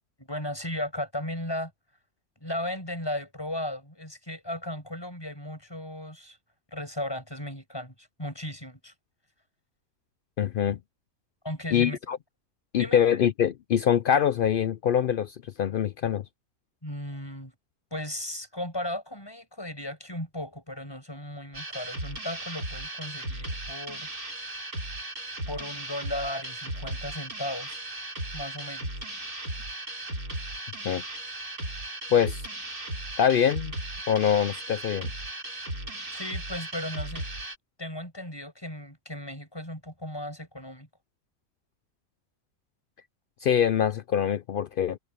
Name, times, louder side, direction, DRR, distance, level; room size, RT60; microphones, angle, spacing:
voice 1, 0.2-1.7 2.4-6.4 6.7-8.9 11.4-12.0 12.8-13.0 16.8-17.5 17.9-24.1 25.5-27.8 28.3-28.9 36.1-37.3 37.8-40.9, left 1 dB, 15° left, 7.7 m, -36 dB
voice 2, 10.4-10.8 11.7-12.2 12.7-16.2 30.8-31.0 32.1-32.4 33.2-33.8 34.1-35.1 43.4-45.0, left 8 dB, 85° left, 0.4 m, -24 dB
sound 1, 21.5-37.6, right 1 dB, 85° right, 7.0 m, -36 dB
omnidirectional pair, 1.5 m